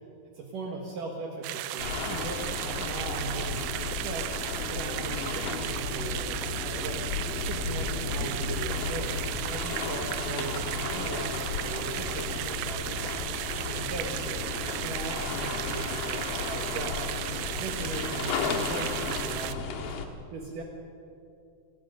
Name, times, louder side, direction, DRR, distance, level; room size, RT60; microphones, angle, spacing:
voice 1, 0.3-4.3 4.7-7.1 7.5-13.0 13.6-17.1 17.5-20.0 20.3-20.6, right 3 dB, 65° right, 0 dB, 3.1 m, -38 dB
sound 1, 1.4-19.6, right 16 dB, 85° right, 2.4 m, -35 dB
sound 2, 1.8-20.0, left 5 dB, 75° left, 3.2 m, -34 dB
28.0 x 19.5 x 5.2 m, 2.5 s
omnidirectional pair, 4.3 m